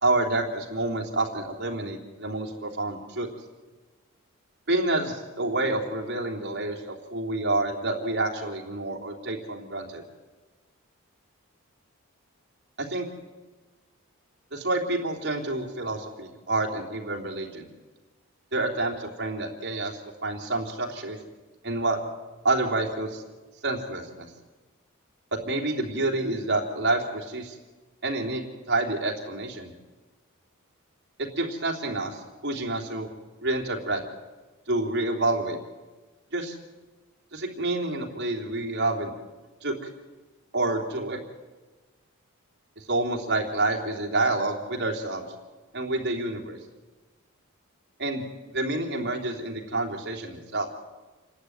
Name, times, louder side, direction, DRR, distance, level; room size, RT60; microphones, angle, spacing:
voice 1, 0.0-3.3 4.7-10.0 12.8-13.1 14.5-17.7 18.5-21.2 21.6-22.0 22.4-23.2 23.6-24.3 25.4-27.6 28.0-28.4 28.7-29.7 31.2-33.1 33.4-34.0 34.7-35.6 36.3-36.5 37.3-39.1 39.6-39.9 40.5-41.2 42.9-45.2 45.7-46.6 48.0-48.2 48.5-50.7, right 2 dB, 50° right, 1 dB, 3.2 m, -28 dB
28.0 x 11.5 x 9.5 m, 1.3 s
head